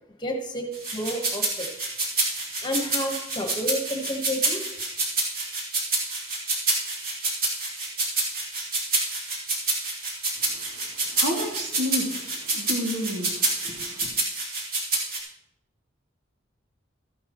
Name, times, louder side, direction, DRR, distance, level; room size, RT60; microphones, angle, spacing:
voice 1, 0.2-1.7 2.6-4.6, equal, 20° left, 3 dB, 1.3 m, -30 dB
sound 1, 0.7-15.2, right 3 dB, 50° right, 2.7 m, -27 dB
voice 2, 10.4-14.1, equal, 70° right, 0 dB, 2.3 m, -32 dB
13.5 x 11.0 x 3.0 m, 0.81 s
head